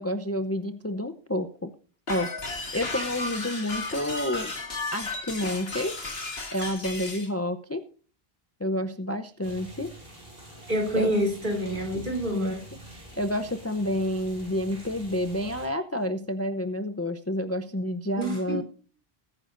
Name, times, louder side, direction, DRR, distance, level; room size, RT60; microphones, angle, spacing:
voice 1, 0.0-1.7 2.1-2.3 2.7-4.5 4.9-5.9 6.5-7.8 8.6-9.9 10.9-11.2 12.3-12.5 12.9-18.6, left 1 dB, 15° left, 9 dB, 0.7 m, -29 dB
sound 1, 2.1-7.3, left 3 dB, 75° left, 2.6 m, -34 dB
sound 2, 9.4-15.7, right 1 dB, 70° right, 5.9 m, -46 dB
voice 2, 10.7-12.7 18.2-18.6, equal, 50° right, 2 dB, 3.4 m, -27 dB
20.5 x 9.9 x 2.6 m, 0.39 s
omnidirectional pair, 1.0 m